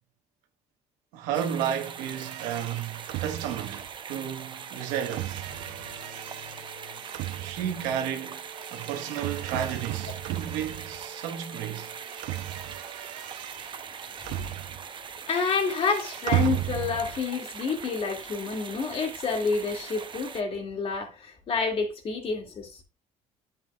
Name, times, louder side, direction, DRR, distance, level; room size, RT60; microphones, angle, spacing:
voice 1, 1.1-5.5 7.4-8.4 8.7-11.9, right 9 dB, 90° right, 1.3 m, -32 dB
sound 1, 1.3-20.4, right 6 dB, 35° right, 0.9 m, -42 dB
sound 2, 2.1-11.4 11.6-15.1 15.3-17.2, right 16 dB, 75° right, 0.5 m, -36 dB
sound 3, 5.5-13.4, right 2 dB, 75° left, 3.8 m, -51 dB
voice 2, 15.3-22.7, left 5 dB, 45° left, 2.2 m, -29 dB
9.5 x 7.6 x 2.3 m
cardioid pair, 90°, 13 cm